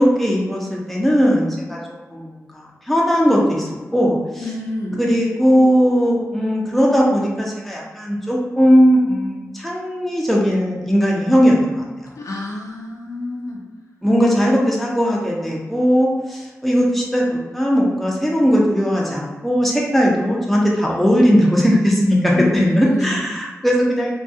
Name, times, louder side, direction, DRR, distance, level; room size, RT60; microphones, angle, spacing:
voice 1, 0.0-1.8 2.1-4.2 5.0-11.8 14.0-24.1, equal, ahead, -4 dB, 0.6 m, -18 dB
voice 2, 4.4-5.0 12.2-13.6 22.3-23.2, left 2 dB, 70° left, -2 dB, 0.5 m, -27 dB
2.3 x 2.3 x 2.6 m, 1.2 s
wide cardioid pair, 70°, 6 cm